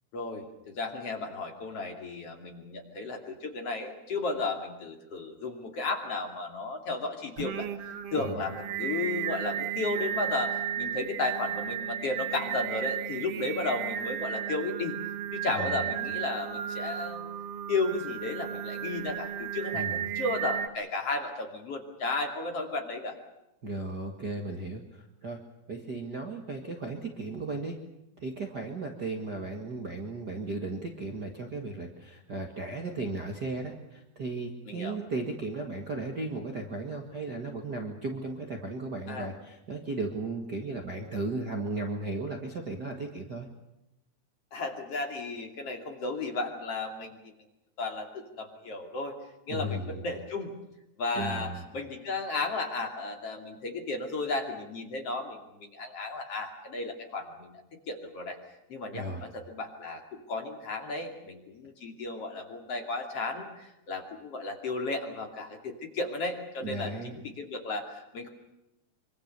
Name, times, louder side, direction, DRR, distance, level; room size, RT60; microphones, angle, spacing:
voice 1, 0.1-15.0 15.3-17.3 17.7-23.2 34.7-35.0 39.1-39.3 44.5-47.3 47.8-49.1 49.5-50.6 51.0-57.6 57.9-58.4 58.7-68.3, left 3 dB, 45° left, 3 dB, 3.4 m, -34 dB
Singing, 7.4-20.7, right 9 dB, 80° right, 1.3 m, -34 dB
voice 2, 15.5-15.9 19.7-20.1 23.6-25.4 25.7-27.8 28.2-43.5 49.5-50.0 51.2-51.6 58.9-59.3 66.6-67.2, right 2 dB, 35° right, 1 dB, 1.9 m, -35 dB
25.5 x 24.5 x 6.8 m, 0.90 s
omnidirectional pair, 4.2 m